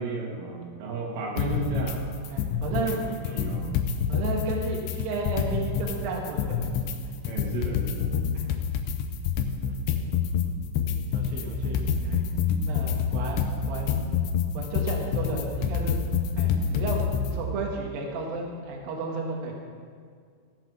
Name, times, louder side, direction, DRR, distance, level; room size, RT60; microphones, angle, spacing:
voice 1, 0.0-2.1 2.8-3.8 7.2-8.1, right 3 dB, 85° right, 0 dB, 4.2 m, -33 dB
sound 1, 1.4-2.0 2.3-3.0 3.3-6.0 6.3-17.4, left 7 dB, 90° left, 2.6 m, -27 dB
voice 2, 2.3-3.0 4.1-6.7 8.3-8.6 9.7-10.0 10.9-12.2 12.6-13.4 13.7-14.0 14.5-16.0 16.4-17.0 17.3-19.6, right 3 dB, 65° right, 0 dB, 2.6 m, -33 dB
16.0 x 6.1 x 6.0 m, 2.1 s
omnidirectional pair, 5.8 m